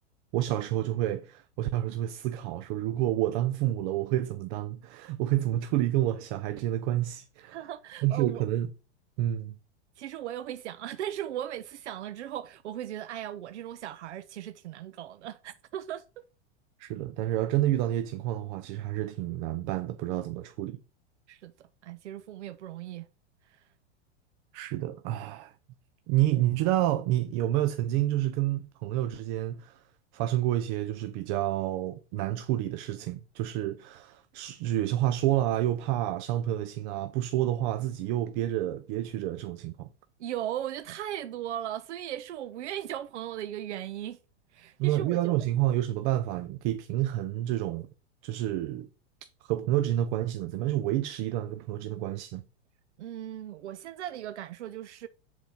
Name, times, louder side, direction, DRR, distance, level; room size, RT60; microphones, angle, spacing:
voice 1, 0.3-7.6 8.0-8.7 9.2-9.5 16.8-20.8 24.5-25.5 26.1-29.8 30.1-39.9 44.8-47.9 48.2-48.9 49.4-52.4, right 13 dB, 45° right, 0.6 m, -29 dB
voice 2, 7.5-8.4 10.0-16.2 21.3-23.1 23.4-23.6 40.2-44.2 44.5-45.4 53.0-55.1, right 11 dB, 85° right, 0.6 m, -38 dB
9.2 x 4.0 x 4.3 m
hypercardioid pair, 125°, 34 cm